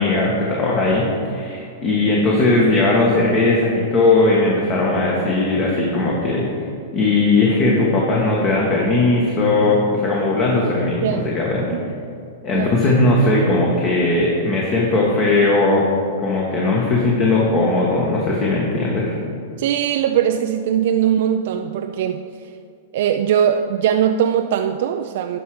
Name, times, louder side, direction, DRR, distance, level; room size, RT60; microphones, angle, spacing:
voice 1, 0.0-6.7 6.9-11.7 12.4-15.8 16.2-19.2, left 2 dB, 35° left, -3 dB, 1.5 m, -18 dB
voice 2, 12.5-12.8 19.6-22.3 22.9-25.4, right 9 dB, 65° right, 6 dB, 0.4 m, -20 dB
11.0 x 5.9 x 5.0 m, 2.4 s
hypercardioid pair, 135°, 0 cm